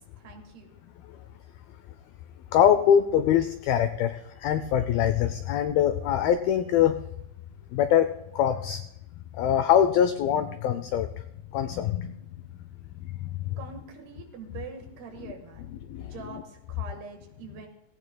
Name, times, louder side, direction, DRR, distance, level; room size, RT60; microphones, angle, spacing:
voice 1, 0.2-0.7 13.6-15.7 16.0-17.7, right 5 dB, 70° right, 4 dB, 3.5 m, -44 dB
voice 2, 2.5-7.0 7.7-8.8 9.4-11.1 11.5-12.1 13.1-13.4 15.2-15.3 15.7-16.4, left 9 dB, 90° left, 10 dB, 2.1 m, -24 dB
18.5 x 17.0 x 2.2 m, 0.82 s
omnidirectional pair, 5.0 m